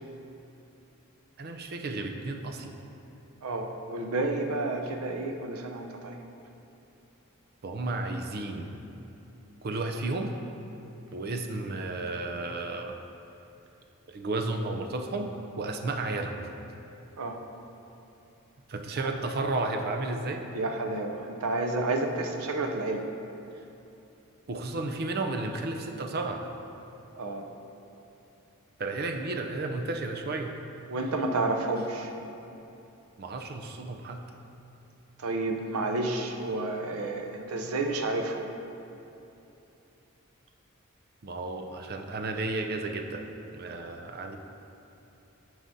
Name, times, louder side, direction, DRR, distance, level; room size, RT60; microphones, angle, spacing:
voice 1, 1.4-2.7 7.6-8.7 9.6-10.3 11.1-13.0 14.1-16.5 18.7-20.6 24.5-26.4 28.8-30.5 33.2-34.2 41.2-43.2 43.5-44.4, right 2 dB, 45° right, 4 dB, 0.5 m, -33 dB
voice 2, 3.4-6.2 17.2-17.4 20.5-23.0 27.1-27.4 30.9-32.1 35.2-38.5, right 2 dB, 90° right, 4 dB, 0.6 m, -30 dB
11.0 x 4.8 x 2.7 m, 2.9 s
head